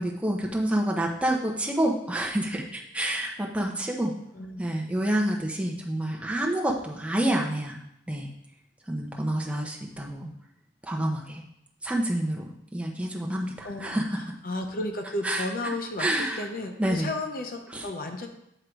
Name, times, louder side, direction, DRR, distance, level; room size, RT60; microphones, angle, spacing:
voice 1, 0.0-4.1 4.6-7.8 8.1-8.3 8.9-10.3 10.8-11.4 11.8-12.4 12.7-14.0 15.2-15.4 16.0-16.4 16.8-17.1 17.7-17.9, right 1 dB, 5° right, -1 dB, 0.8 m, -28 dB
voice 2, 13.6-14.0 14.4-18.3, left 2 dB, 50° left, 4 dB, 0.8 m, -33 dB
7.9 x 3.7 x 4.6 m, 0.78 s
head